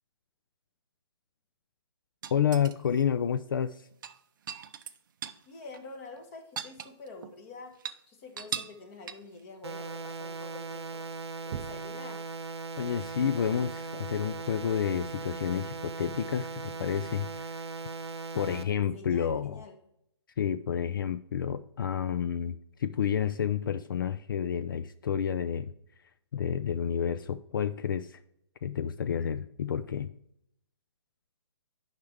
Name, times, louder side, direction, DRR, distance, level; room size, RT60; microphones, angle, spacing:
sound 1, 2.2-3.0 3.9-5.4 5.7-5.8 6.2-7.4 7.7-8.0 8.4-8.8 9.1-9.4 11.5-11.9 13.5-13.6, right 8 dB, 45° right, 0.6 m, -39 dB
voice 1, 2.3-3.9 12.8-17.5 18.3-19.6 20.4-25.7 26.3-28.2 28.6-30.1, left 8 dB, 45° left, 13 dB, 0.4 m, -30 dB
voice 2, 5.5-7.7 8.1-11.1 11.4-12.2 18.9-19.8, left 3 dB, 30° left, 5 dB, 1.4 m, -47 dB
sound 2, 9.6-18.6, right 4 dB, 65° right, 0.9 m, -39 dB
10.5 x 5.8 x 3.3 m, 0.76 s
figure-of-eight pair, 135°, 15 cm